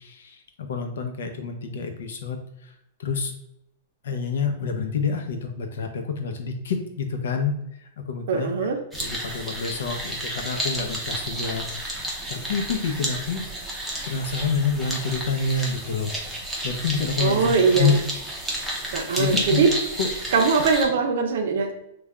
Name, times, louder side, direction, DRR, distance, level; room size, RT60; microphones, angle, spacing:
voice 1, 0.0-2.7 3.0-3.3 4.0-8.5 9.0-13.4 14.1-18.0 19.2-19.6 20.0-20.1, left 5 dB, 80° left, 5 dB, 0.6 m, -28 dB
voice 2, 8.3-8.8 17.2-18.0 18.9-19.7 20.3-21.7, right 5 dB, 65° right, 4 dB, 0.6 m, -21 dB
sound 1, 8.9-20.8, right 1 dB, ahead, 0.6 m, -31 dB
3.3 x 2.3 x 3.6 m, 0.80 s
supercardioid pair, 165°, 0 cm